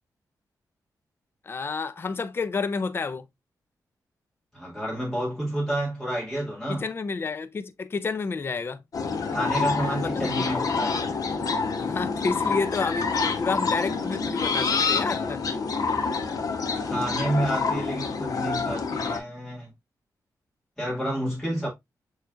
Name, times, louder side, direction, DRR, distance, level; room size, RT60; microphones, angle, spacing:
voice 1, 1.5-3.3 6.7-8.8 9.9-10.3 11.8-15.5, left 4 dB, 35° left, 0.4 m, -30 dB
voice 2, 4.5-6.8 9.3-11.1 16.8-19.7 20.8-21.7, right 1 dB, 5° left, 1.8 m, -30 dB
sound 1, 8.9-19.2, left 4 dB, 60° left, 0.9 m, -27 dB
6.8 x 3.2 x 2.4 m
wide cardioid pair, 110°, 7 cm